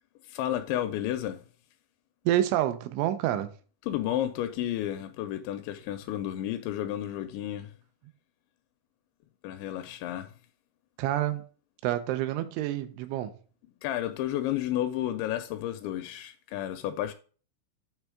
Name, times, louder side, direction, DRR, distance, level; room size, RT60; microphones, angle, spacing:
voice 1, 0.3-1.4 3.9-7.7 9.4-10.3 13.8-17.1, left 12 dB, 85° left, 2.7 m, -32 dB
voice 2, 2.3-3.5 11.0-11.4 11.8-13.3, right 13 dB, 85° right, 3.1 m, -28 dB
9.0 x 3.5 x 4.7 m
omnidirectional pair, 5.4 m